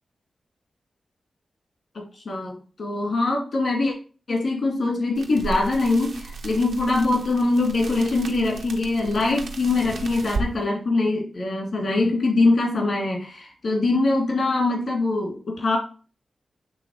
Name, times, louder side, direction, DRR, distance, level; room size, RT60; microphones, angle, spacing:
voice 1, 1.9-3.9 4.3-15.8, left 2 dB, 75° left, 0 dB, 2.4 m, -23 dB
sound 1, 5.2-10.5, right 3 dB, 90° right, 0.9 m, -35 dB
8.2 x 3.3 x 4.7 m, 0.38 s
cardioid pair, 45°, 0 cm